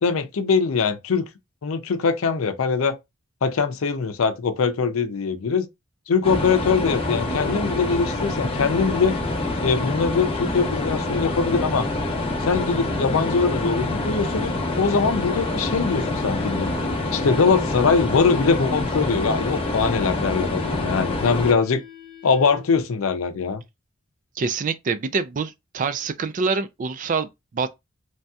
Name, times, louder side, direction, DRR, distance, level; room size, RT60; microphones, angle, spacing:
voice 1, 0.0-1.3 1.6-3.0 3.4-5.7 6.1-9.2 9.6-11.9 12.4-16.7 17.1-21.8 22.2-23.6, left 5 dB, 80° left, 0.5 m, -22 dB
sound 1, 6.2-21.5, left 2 dB, 25° left, 0.7 m, -26 dB
sound 2, 7.0-22.9, left 5 dB, 55° right, 1.6 m, -46 dB
voice 2, 24.4-27.7, right 4 dB, 40° right, 0.3 m, -26 dB
3.2 x 2.7 x 2.3 m
head